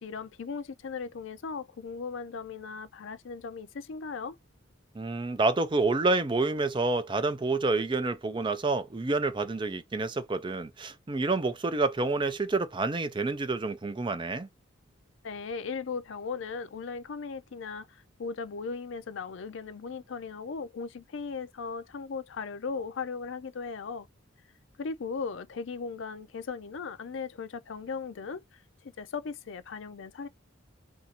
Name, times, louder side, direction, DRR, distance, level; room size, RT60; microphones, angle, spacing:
voice 1, 0.0-4.4 15.2-24.1 24.8-30.3, left 5 dB, 70° left, 0.4 m, -37 dB
voice 2, 4.9-14.5, right 3 dB, 25° right, 0.4 m, -28 dB
2.7 x 2.5 x 4.0 m
head